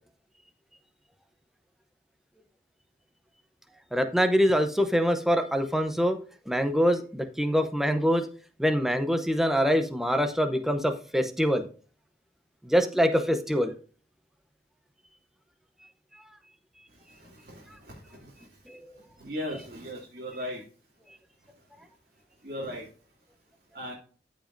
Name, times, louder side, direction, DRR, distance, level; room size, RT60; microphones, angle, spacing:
voice 1, 3.9-6.2 6.5-8.3 8.6-11.7 12.6-13.7 18.7-18.8, equal, ahead, 7 dB, 0.7 m, -24 dB
voice 2, 19.2-20.6 22.4-22.8 23.7-23.9, equal, 50° right, -5 dB, 2.5 m, -35 dB
14.0 x 5.1 x 2.6 m, 0.39 s
head